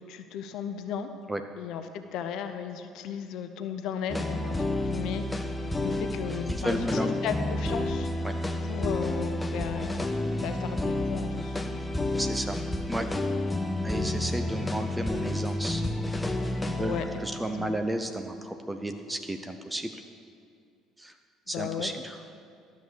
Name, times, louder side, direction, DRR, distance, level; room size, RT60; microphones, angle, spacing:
voice 1, 0.0-1.1 1.6-5.2 5.8-8.1 8.6-10.1 10.4-11.6 16.8-17.2 17.6-17.7 21.5-21.9, left 7 dB, 60° left, 8 dB, 0.6 m, -35 dB
sound 1, 4.1-19.3, left 1 dB, 15° left, 0.9 m, -31 dB
voice 2, 6.5-7.2 8.2-8.3 12.2-12.6 12.9-13.1 13.8-15.8 16.6-19.9 21.0-21.1 21.5-22.2, right 1 dB, 10° right, 7 dB, 0.7 m, -33 dB
12.5 x 6.3 x 6.9 m, 2.3 s
figure-of-eight pair, 55°, 0 cm